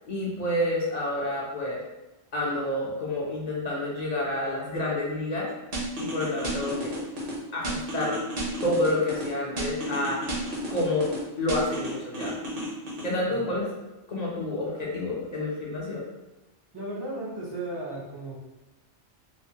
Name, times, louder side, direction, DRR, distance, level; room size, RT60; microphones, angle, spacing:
voice 1, 0.1-1.8 2.3-5.5 6.0-6.9 7.5-8.2 8.6-10.2 10.7-11.1 11.4-12.4 13.0-13.7 14.1-16.0, left 1 dB, 50° left, -4 dB, 0.5 m, -29 dB
sound 1, 5.7-7.3 7.6-9.3 9.6-11.2 11.5-13.1, right 1 dB, 55° right, 0.8 m, -32 dB
voice 2, 16.7-18.4, right 2 dB, 35° right, -5 dB, 0.4 m, -35 dB
3.1 x 2.0 x 2.6 m, 1.1 s
omnidirectional pair, 1.2 m